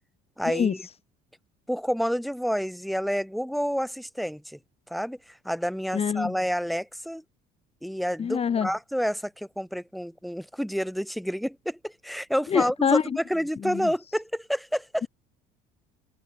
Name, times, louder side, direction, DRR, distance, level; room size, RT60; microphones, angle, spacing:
voice 1, 0.4-0.8 1.7-4.6 4.9-7.2 7.8-15.1, equal, ahead, 7.6 m, -29 dB
voice 2, 5.9-6.3 8.2-8.7 12.5-13.0 13.6-13.9, left 7 dB, 35° left, 1.9 m, -25 dB
cardioid pair, 110°, 19 cm